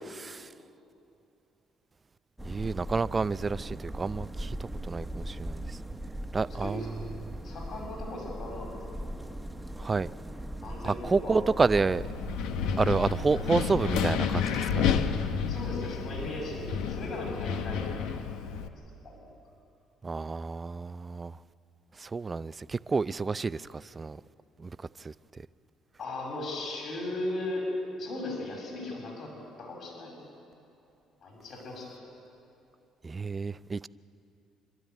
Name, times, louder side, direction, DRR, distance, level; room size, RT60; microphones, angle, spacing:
voice 1, 0.2-0.5 2.4-5.8 6.3-6.8 7.2-7.3 9.8-10.1 10.8-12.0 12.8-14.9 20.0-21.4 22.0-24.2 24.6-24.7 25.0-25.1 33.0-33.9, right 4 dB, 30° right, 0.5 m, -29 dB
sound 1, 2.4-14.0, right 1 dB, 5° right, 1.2 m, -39 dB
voice 2, 6.5-7.0 7.4-9.2 9.8-9.9 10.3-11.4 15.5-18.1 19.0-19.2 26.0-27.7 28.0-29.3 29.6-30.2 31.2-32.0, left 2 dB, 55° left, 6.4 m, -38 dB
Wind, 11.8-18.7, left 7 dB, 80° left, 1.1 m, -30 dB
26.0 x 12.5 x 9.4 m
supercardioid pair, 75°, 0 cm